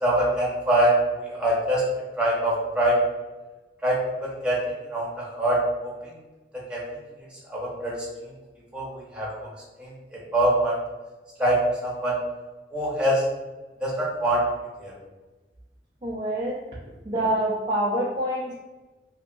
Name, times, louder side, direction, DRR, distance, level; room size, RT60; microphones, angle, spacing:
voice 1, 0.0-1.9 2.2-3.0 3.8-4.6 4.9-5.9 6.7-6.8 7.5-8.0 8.7-9.3 9.8-9.9 10.3-10.8 11.4-12.2 12.7-13.2 13.8-14.4 14.8-14.9, right 1 dB, 5° right, -6 dB, 0.8 m, -24 dB
voice 2, 16.0-16.6 17.1-18.5, right 1 dB, 30° right, -5 dB, 0.4 m, -26 dB
2.7 x 2.6 x 2.6 m, 1.2 s
head